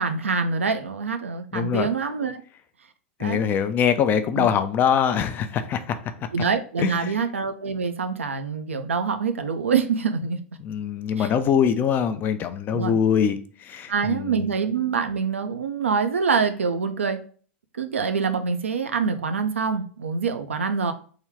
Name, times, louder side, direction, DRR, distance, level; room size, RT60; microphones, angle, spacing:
voice 1, 0.0-2.4 3.2-3.4 4.4-4.5 6.3-10.4 11.2-11.3 12.7-13.0 13.9-17.2 17.7-20.9, right 5 dB, 75° right, 8 dB, 0.4 m, -25 dB
voice 2, 1.5-1.9 3.2-6.1 6.8-7.1 10.6-14.5, left 8 dB, 30° left, 9 dB, 0.4 m, -23 dB
3.6 x 2.2 x 3.4 m, 0.42 s
figure-of-eight pair, 95°, 7 cm